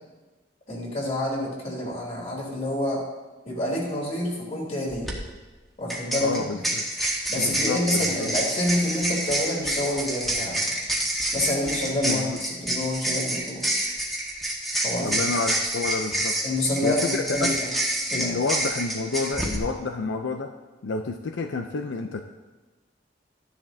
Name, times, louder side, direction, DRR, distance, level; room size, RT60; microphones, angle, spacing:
voice 1, 0.7-3.0 3.4-5.1 5.8-6.7 7.3-10.7 11.3-13.6 14.8-15.3 16.4-17.7 18.1-18.4, left 1 dB, 35° left, -3 dB, 3.3 m, -28 dB
sound 1, 4.9-5.1 5.9-19.6, right 1 dB, ahead, 1.4 m, -28 dB
voice 2, 6.2-6.8 7.4-8.3 12.0-12.4 15.0-16.3 16.8-17.6 18.1-20.5 20.8-22.2, left 4 dB, 80° left, 6 dB, 0.5 m, -29 dB
13.5 x 10.5 x 2.7 m, 1.2 s
head